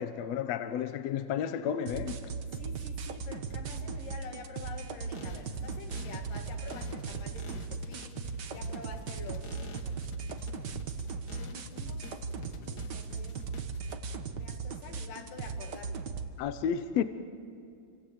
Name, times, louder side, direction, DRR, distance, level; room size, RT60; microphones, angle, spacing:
voice 1, 0.0-2.3 16.4-17.0, left 8 dB, 70° left, 1.7 m, -32 dB
sound 1, 1.9-16.3, right 5 dB, 70° right, 1.0 m, -38 dB
voice 2, 2.5-10.0 10.7-10.9 11.4-12.2 12.5-13.4 14.4-16.1, left 4 dB, 90° left, 4.0 m, -48 dB
sound 2, 5.0-14.0, left 5 dB, 50° left, 1.2 m, -49 dB
29.5 x 25.0 x 8.0 m
omnidirectional pair, 3.8 m